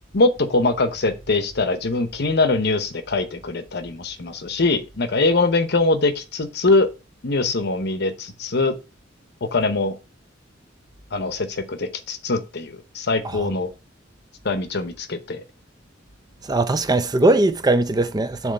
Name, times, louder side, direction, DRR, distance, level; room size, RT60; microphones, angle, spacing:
voice 1, 0.1-6.9 7.2-8.7 9.5-9.9 11.1-13.7 14.4-15.4, left 3 dB, 60° left, 0.9 m, -22 dB
voice 2, 16.4-18.5, right 2 dB, 20° right, 0.5 m, -20 dB
7.2 x 3.1 x 5.3 m
head